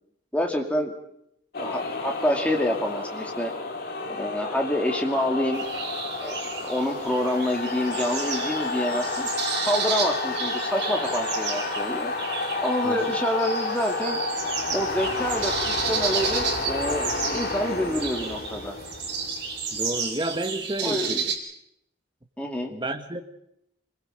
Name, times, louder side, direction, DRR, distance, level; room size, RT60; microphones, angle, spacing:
voice 1, 0.3-0.9 1.6-3.5 4.1-5.6 6.2-9.3 9.7-12.1 12.6-14.2 14.7-18.7 20.8-21.2 22.4-22.7, left 1 dB, 5° left, 2.6 m, -27 dB
sound 1, 1.5-20.1, left 3 dB, 55° left, 2.0 m, -31 dB
sound 2, 5.5-21.4, right 6 dB, 70° right, 4.2 m, -32 dB
voice 2, 19.7-21.3 22.7-23.2, right 1 dB, 25° right, 1.5 m, -31 dB
27.0 x 21.0 x 5.2 m
head